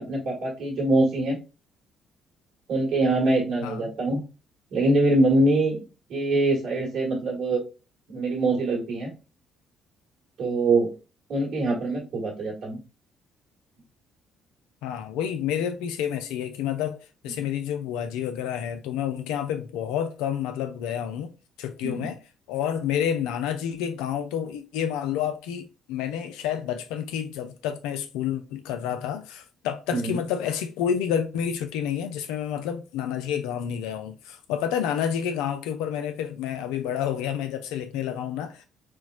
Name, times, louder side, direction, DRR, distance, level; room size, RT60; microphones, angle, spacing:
voice 1, 0.0-1.4 2.7-4.2 4.7-5.8 6.1-7.6 8.1-9.1 10.4-10.9 11.3-12.8 17.3-17.4 21.8-22.1 29.9-30.2, right 2 dB, 70° right, 1.6 m, -24 dB
voice 2, 3.6-3.9 14.8-17.0 17.2-21.3 21.6-22.2 22.5-38.7, left 9 dB, 80° left, 0.4 m, -29 dB
4.5 x 2.2 x 2.4 m
hypercardioid pair, 55°, 0 cm